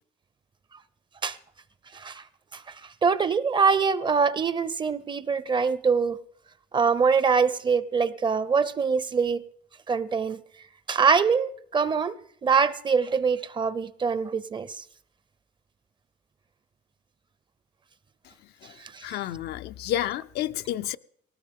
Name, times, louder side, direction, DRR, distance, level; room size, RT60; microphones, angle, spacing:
voice 1, 1.9-2.2 2.5-2.6 3.0-6.2 6.7-9.4 9.9-10.4 10.9-12.2 12.4-14.7 18.9-19.0, right 5 dB, 25° right, 0.6 m, -24 dB
voice 2, 19.0-21.0, left 12 dB, 70° left, 0.5 m, -30 dB
19.0 x 18.0 x 3.6 m
cardioid pair, 110°, 17 cm